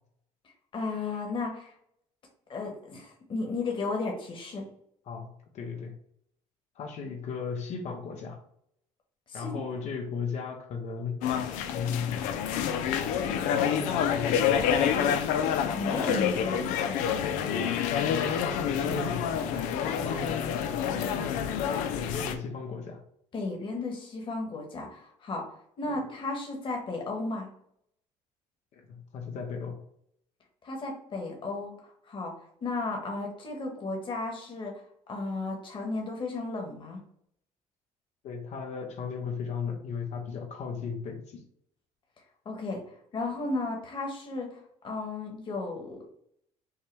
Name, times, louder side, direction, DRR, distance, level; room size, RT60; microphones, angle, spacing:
voice 1, 0.7-1.7 2.5-4.7 9.3-9.5 15.7-17.3 23.3-25.5 25.8-27.5 30.6-31.7 32.0-32.3 32.6-34.7 35.1-37.0 42.4-42.8 43.1-44.6 44.8-46.0, left 3 dB, 40° left, 1 dB, 1.5 m, -34 dB
voice 2, 5.1-5.9 6.8-8.4 9.3-11.2 11.7-12.3 13.5-14.8 18.1-20.4 21.0-21.4 21.9-23.0 25.8-25.9 28.7-29.8 38.2-41.4, left 5 dB, 60° left, 3 dB, 0.9 m, -36 dB
sound 1, 11.2-22.3, left 8 dB, 90° left, 0.5 m, -28 dB
5.6 x 2.2 x 3.4 m, 0.68 s
cardioid pair, 100°, 13 cm